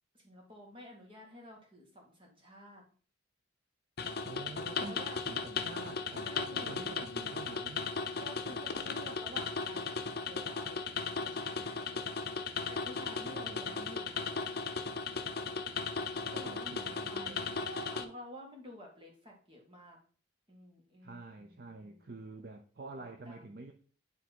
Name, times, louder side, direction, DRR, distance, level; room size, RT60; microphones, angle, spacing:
voice 1, 0.1-2.8 4.8-5.2 6.2-6.8 8.2-12.3 12.7-14.6 16.3-20.0 20.5-22.2 23.0-23.6, equal, 25° right, 0 dB, 2.0 m, -51 dB
sound 1, 4.0-18.0, left 5 dB, 50° left, 0.6 m, -37 dB
voice 2, 4.2-7.9 13.3-13.9 16.2-17.6 21.0-23.7, right 3 dB, 50° right, 5 dB, 0.5 m, -48 dB
9.1 x 3.5 x 4.5 m, 0.42 s
head